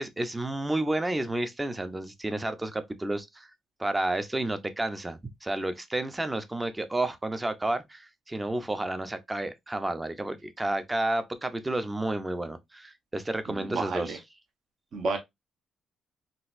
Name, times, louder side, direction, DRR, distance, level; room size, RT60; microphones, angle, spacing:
voice 1, 0.0-3.5 3.8-14.2, right 2 dB, 15° right, 0.6 m, -31 dB
voice 2, 13.6-14.2 14.9-15.2, right 3 dB, 60° right, 1.0 m, -31 dB
3.9 x 2.4 x 2.5 m
cardioid pair, 90°, 0 cm